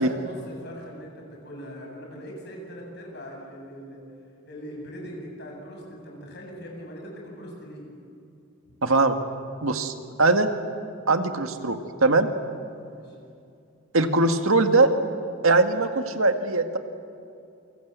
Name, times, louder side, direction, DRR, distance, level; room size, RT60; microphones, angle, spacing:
voice 1, 0.0-4.0 4.5-7.8 12.9-13.1, equal, 55° left, 0 dB, 7.9 m, -40 dB
voice 2, 8.8-9.2 9.6-10.5 11.1-12.3 13.9-14.9 15.4-16.8, right 3 dB, 85° right, 7 dB, 1.9 m, -21 dB
28.5 x 25.0 x 8.2 m, 2.5 s
head